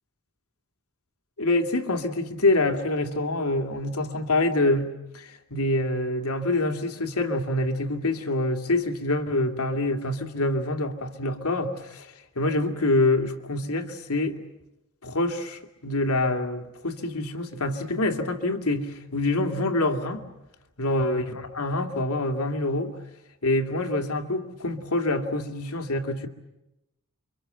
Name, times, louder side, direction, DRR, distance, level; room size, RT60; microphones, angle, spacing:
voice 1, 1.4-14.4 15.0-20.3 20.8-22.9 23.4-26.3, left 2 dB, 80° left, 2.4 m, -26 dB
30.0 x 24.5 x 7.9 m
head